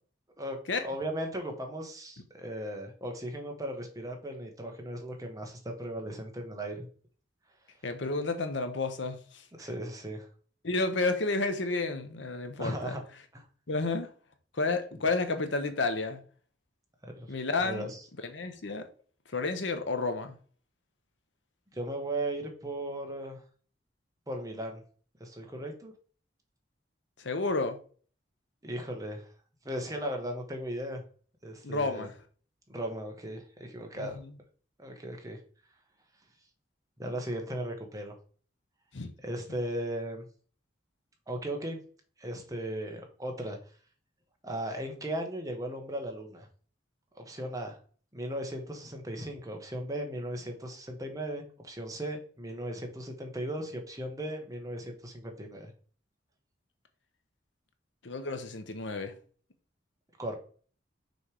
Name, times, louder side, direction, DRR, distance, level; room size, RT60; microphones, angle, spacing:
voice 1, 0.8-6.9 9.6-10.3 12.6-13.0 13.3-13.4 17.0-17.3 17.6-18.0 21.7-23.4 24.3-24.8 25.2-25.9 28.6-29.3 29.6-31.0 31.4-32.1 32.7-34.2 34.8-35.4 37.0-38.1 39.2-40.2 41.3-41.8 42.2-43.6 44.4-46.5 47.1-47.8 48.1-55.7 60.2-60.4, right 1 dB, 20° right, 1.2 m, -37 dB
voice 2, 7.8-9.4 10.6-13.0 13.7-14.1 14.5-16.2 17.3-17.9 18.2-18.9 19.3-20.4 27.2-27.8 31.6-32.1 34.0-34.3 38.9-39.1 58.0-59.1, left 3 dB, 80° left, 0.9 m, -31 dB
6.3 x 3.3 x 4.9 m
head